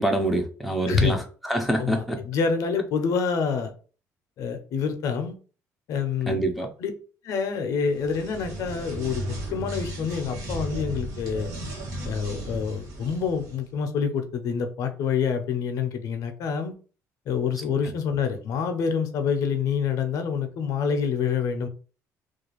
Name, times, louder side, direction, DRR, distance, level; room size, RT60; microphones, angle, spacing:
voice 1, 0.0-2.2 6.3-6.7, right 1 dB, ahead, 0.3 m, -26 dB
voice 2, 0.9-1.2 1.8-3.7 4.4-5.4 5.9-6.4 6.8-6.9 7.2-11.5 12.0-16.7 17.3-21.7, left 6 dB, 65° left, 0.5 m, -27 dB
sound 1, 7.9-13.6, right 1 dB, 65° right, 1.1 m, -35 dB
2.4 x 2.2 x 3.0 m
cardioid pair, 145°, 6 cm